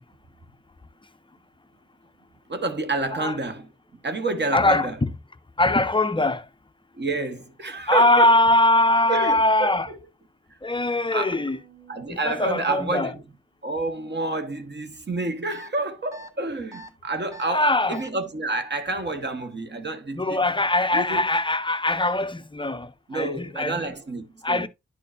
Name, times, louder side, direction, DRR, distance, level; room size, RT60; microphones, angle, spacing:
voice 1, 2.5-3.7 4.0-5.0 7.0-8.3 9.1-9.8 11.1-11.4 11.9-13.2 13.6-20.4 20.9-21.2 23.1-24.7, right 2 dB, 35° right, 1.1 m, -29 dB
voice 2, 4.5-5.1 5.6-6.5 7.9-9.9 10.6-11.6 12.1-13.1 17.5-18.0 20.1-23.9 24.4-24.7, left 2 dB, 15° left, 0.4 m, -22 dB
sound 1, 11.3-13.2, right 5 dB, 70° right, 4.8 m, -51 dB
sound 2, 15.5-15.7 16.1-16.3 16.7-16.9 17.3-17.5 17.9-18.1, right 1 dB, 10° right, 1.4 m, -42 dB
11.5 x 4.5 x 2.5 m
wide cardioid pair, 135°, 29 cm